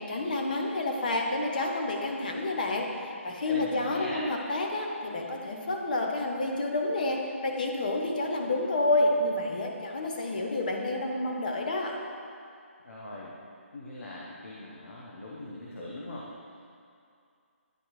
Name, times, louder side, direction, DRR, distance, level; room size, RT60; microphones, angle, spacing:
voice 1, 0.1-12.0, left 2 dB, 40° left, 1 dB, 0.7 m, -29 dB
voice 2, 3.5-4.3 12.8-13.3 13.7-16.3, left 1 dB, 90° left, -5 dB, 1.0 m, -40 dB
10.0 x 3.8 x 3.1 m, 2.4 s
hypercardioid pair, 175°, 7 cm